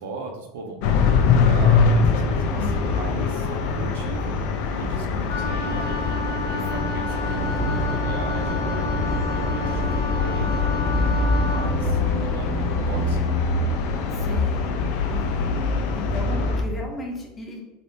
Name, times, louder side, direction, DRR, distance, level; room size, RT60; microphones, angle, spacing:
voice 1, 0.0-4.4 4.7-10.6 11.4-13.2 14.2-14.5, right 3 dB, 85° right, 3 dB, 0.5 m, -37 dB
sound 1, 0.8-16.6, left 4 dB, 65° left, 0.3 m, -23 dB
voice 2, 2.6-2.9 4.9-5.6 6.7-6.9 11.0-11.5 14.1-14.7 15.1-17.6, left 2 dB, 25° left, 0 dB, 0.7 m, -36 dB
Wind instrument woodwind instrument, 5.3-11.7, left 1 dB, 85° left, 0.9 m, -31 dB
sound 2, 7.4-16.7, equal, 5° right, 0.4 m, -31 dB
3.4 x 2.0 x 2.6 m, 1.0 s
supercardioid pair, 110°, 0 cm